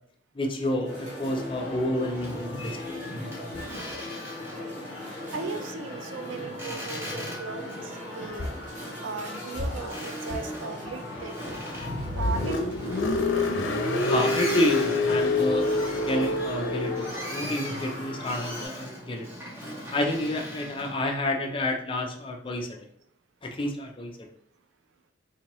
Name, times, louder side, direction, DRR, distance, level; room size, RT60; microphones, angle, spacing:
voice 1, 0.3-3.0 3.5-3.7 8.4-8.5 13.1-13.2 14.1-19.3 19.9-22.8 23.4-24.1, left 1 dB, 25° left, 3 dB, 0.4 m, -29 dB
sound 1, 0.8-18.7, left 1 dB, 40° right, 1.1 m, -39 dB
Boat Water vehicle, 1.2-21.0, equal, 15° right, 0.8 m, -40 dB
voice 2, 5.3-8.5 9.0-11.6 12.1-12.6, right 4 dB, 75° right, 8 dB, 0.4 m, -37 dB
Car, 11.8-17.2, left 2 dB, 90° left, 0.5 m, -27 dB
3.6 x 2.8 x 2.9 m, 0.63 s
head